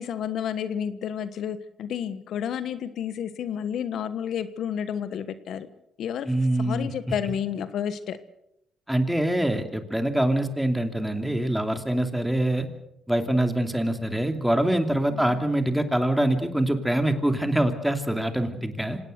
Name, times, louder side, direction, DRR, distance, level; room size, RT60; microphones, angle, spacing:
voice 1, 0.0-5.7 6.0-6.3 6.6-8.2 15.1-15.4, left 8 dB, 70° left, 13 dB, 1.3 m, -31 dB
voice 2, 6.3-6.9 8.9-12.7 13.1-19.0, right 1 dB, 5° right, 7 dB, 2.8 m, -24 dB
26.0 x 18.0 x 6.8 m, 0.78 s
cardioid pair, 90°, 0 cm